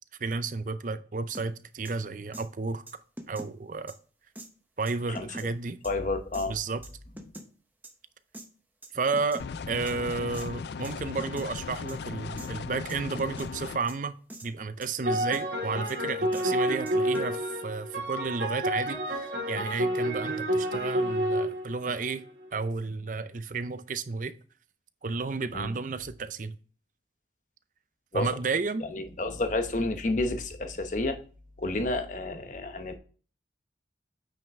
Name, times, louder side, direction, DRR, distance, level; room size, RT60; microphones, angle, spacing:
voice 1, 0.2-2.8 3.3-3.9 4.8-5.8 6.5-6.8 8.9-14.2 14.4-22.2 22.5-24.3 25.0-26.6 28.1-28.8, right 4 dB, 45° right, 0.6 m, -32 dB
sound 1, 1.3-1.5 1.8-1.9 2.3-2.5 2.9-3.5 3.9-4.0 4.4-4.5 4.9-5.5 5.8-5.9 6.3-6.5 6.8-7.5 7.8-7.9 8.3-8.5 8.8-9.5 9.9-10.0 10.3-10.5 10.8-10.9 11.2-11.5 11.9-12.0 12.4-12.5 12.9-13.5 13.9-14.0 14.3-14.5 14.8-15.4 15.9-16.0 16.3-16.4 16.9-17.4, right 1 dB, 10° right, 0.8 m, -43 dB
voice 2, 5.8-6.5 25.5-25.7 28.1-28.3 28.8-31.2 31.6-33.0, left 2 dB, 40° left, 0.9 m, -30 dB
sound 2, 9.4-13.8, left 5 dB, 65° left, 0.4 m, -37 dB
sound 3, 15.0-22.5, equal, 65° right, 2.3 m, -29 dB
9.0 x 5.4 x 3.5 m
head